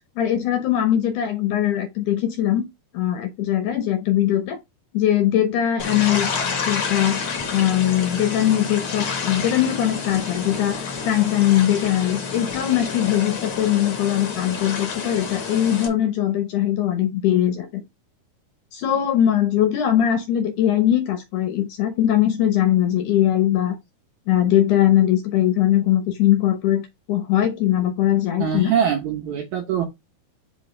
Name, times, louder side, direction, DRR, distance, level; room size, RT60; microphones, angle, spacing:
voice 1, 0.2-2.7 2.9-4.6 4.9-6.3 6.7-7.2 7.5-17.8 18.7-23.8 24.3-28.7, left 11 dB, 70° left, 2.0 m, -21 dB
sound 1, 5.8-15.9, left 5 dB, 55° left, 1.6 m, -29 dB
voice 2, 28.4-29.9, right 8 dB, 75° right, 1.8 m, -23 dB
5.1 x 4.0 x 5.1 m
omnidirectional pair, 4.3 m